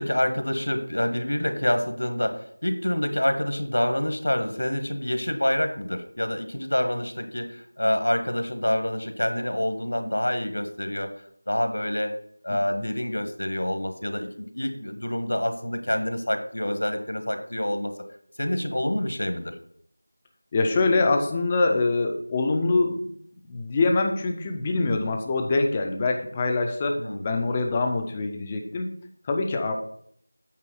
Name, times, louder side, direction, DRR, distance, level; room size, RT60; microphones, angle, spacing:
voice 1, 0.0-12.1 12.4-17.9 18.4-19.5 27.0-27.3, left 1 dB, 70° left, 7 dB, 1.3 m, -27 dB
voice 2, 12.5-12.8 20.5-23.1 23.5-28.9 29.2-29.7, left 3 dB, 5° left, 4 dB, 0.3 m, -24 dB
8.4 x 3.9 x 6.1 m, 0.66 s
figure-of-eight pair, 180°, 0 cm